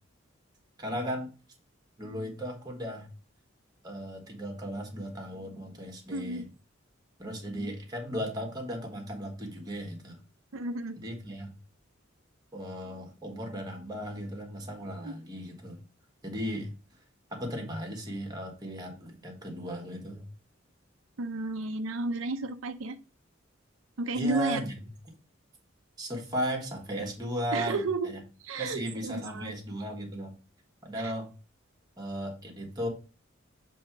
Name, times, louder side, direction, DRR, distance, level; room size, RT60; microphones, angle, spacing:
voice 1, 0.8-1.3 2.0-3.1 3.8-6.5 7.2-10.2 11.0-11.5 12.5-15.8 16.2-16.7 17.3-20.3 24.1-24.8 26.0-28.2 28.6-30.3 30.8-31.3 32.0-32.9, equal, 20° right, 3 dB, 1.5 m, -36 dB
voice 2, 6.1-6.4 10.5-11.0 14.8-15.2 21.2-23.0 24.0-24.6 27.5-28.1 28.4-29.5 31.0-31.1, right 3 dB, 80° right, 7 dB, 0.6 m, -32 dB
7.4 x 2.9 x 6.0 m, 0.34 s
head